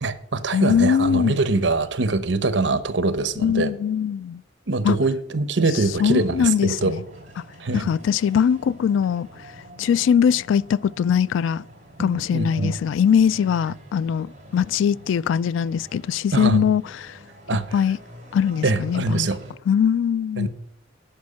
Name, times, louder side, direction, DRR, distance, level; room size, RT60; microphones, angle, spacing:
voice 1, 0.0-3.7 4.7-7.0 7.6-7.9 12.0-12.7 16.3-16.6 17.5-17.8 18.6-19.4 20.4-20.5, right 3 dB, 70° right, 0.9 m, -23 dB
voice 2, 0.5-1.4 3.4-4.4 4.8-5.0 6.0-7.0 7.7-9.3 9.8-11.6 12.0-17.2 17.5-18.0 18.3-19.3 19.7-20.5, left 8 dB, 85° left, 0.3 m, -21 dB
sound 1, 5.5-19.5, right 1 dB, 40° right, 3.3 m, -46 dB
10.5 x 5.6 x 8.5 m
head